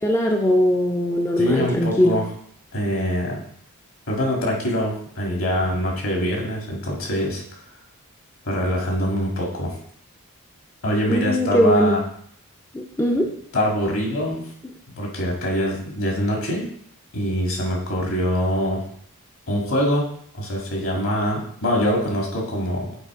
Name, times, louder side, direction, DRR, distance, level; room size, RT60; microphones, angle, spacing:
voice 1, 0.0-2.2 11.1-12.0 12.7-13.3, equal, 10° left, 1 dB, 0.4 m, -20 dB
voice 2, 1.4-2.3 2.7-3.4 4.1-7.4 8.4-9.7 10.8-12.0 13.5-14.5 15.0-16.7 17.1-18.8 19.5-20.1 20.3-23.0, equal, 65° left, -1 dB, 1.8 m, -24 dB
8.2 x 3.3 x 4.7 m, 0.66 s
head